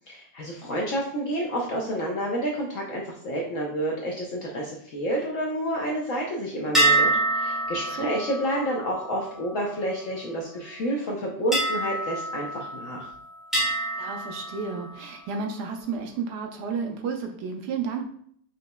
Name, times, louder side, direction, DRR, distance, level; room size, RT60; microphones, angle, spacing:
voice 1, 0.1-13.1, right 1 dB, 65° left, -2 dB, 0.8 m, -29 dB
sound 1, 6.7-10.4 11.5-13.1 13.5-15.2, right 2 dB, ahead, 0.5 m, -27 dB
voice 2, 13.9-18.0, right 5 dB, 75° right, 3 dB, 1.1 m, -32 dB
5.2 x 2.8 x 2.2 m, 0.64 s
omnidirectional pair, 2.0 m